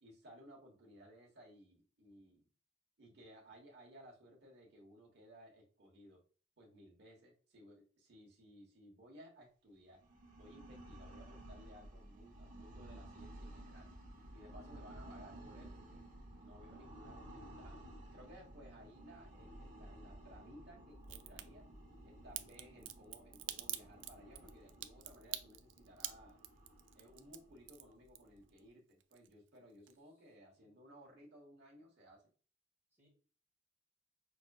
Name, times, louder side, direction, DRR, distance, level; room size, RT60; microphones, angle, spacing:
voice 1, 0.0-2.5 3.0-6.2 6.6-10.0 10.3-13.9 14.3-16.1 16.4-17.8 18.1-21.7 22.0-26.4 26.9-32.3, equal, 60° right, -2 dB, 1.2 m, -59 dB
sound 1, 9.9-28.7, right 1 dB, 45° right, 1.1 m, -55 dB
Crack, 21.0-21.4 22.3-28.6 28.9-29.6 29.9-30.0, right 13 dB, 80° right, 0.4 m, -45 dB
voice 2, 29.8-30.7 32.9-33.1, equal, 15° right, -4 dB, 1.4 m, -79 dB
5.9 x 2.6 x 2.3 m, 0.39 s
head